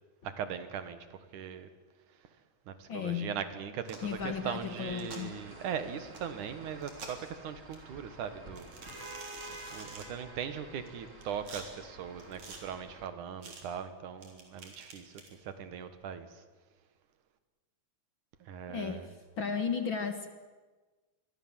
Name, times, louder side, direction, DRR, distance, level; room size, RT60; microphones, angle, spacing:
voice 1, 0.2-1.0 1.3-1.7 2.7-8.7 9.7-15.1 15.4-16.3 18.4-19.1, right 8 dB, 80° right, 10 dB, 3.1 m, -39 dB
voice 2, 2.9-3.3 4.0-5.3 18.7-19.0 19.4-20.3, left 6 dB, 50° left, 7 dB, 1.8 m, -34 dB
sound 1, 3.8-4.1 4.9-5.2 6.1-6.2 6.8-7.3 7.7-7.8 8.6-10.1 10.9-11.6 12.2-12.6 13.4-13.6 14.2-15.3, right 4 dB, 65° right, 5.0 m, -47 dB
sound 2, 4.0-13.1, right 1 dB, 25° right, 3.4 m, -50 dB
27.0 x 22.5 x 7.5 m, 1.3 s
omnidirectional pair, 3.5 m